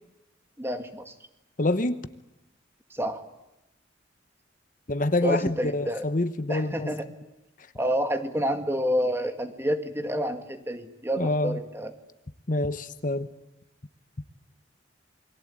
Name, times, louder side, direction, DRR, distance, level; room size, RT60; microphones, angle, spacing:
voice 1, 0.6-1.1 2.9-3.2 5.2-6.1 6.5-7.0 7.8-11.9, equal, 10° right, 7 dB, 2.0 m, -28 dB
voice 2, 1.6-2.0 4.9-6.9 11.2-11.6 12.5-13.3, left 2 dB, 40° left, 11 dB, 1.0 m, -26 dB
28.5 x 23.0 x 8.7 m, 0.91 s
head